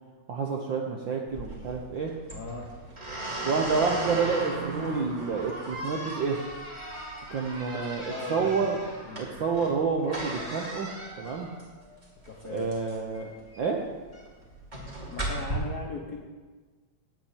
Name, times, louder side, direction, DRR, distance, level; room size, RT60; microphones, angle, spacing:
voice 1, 0.3-2.1 3.4-6.4 7.3-8.0 8.3-8.8 9.1-10.9 11.2-11.5 12.4-13.3 13.6-13.8, right 5 dB, 65° right, 1 dB, 1.2 m, -28 dB
sound 1, 1.3-15.5, right 1 dB, 15° right, 2.6 m, -37 dB
voice 2, 2.3-2.7 8.0-8.5 9.0-9.4 12.3-12.7 15.1-16.2, left 3 dB, 65° left, -1 dB, 0.9 m, -38 dB
8.6 x 8.5 x 9.0 m, 1.4 s
omnidirectional pair, 3.3 m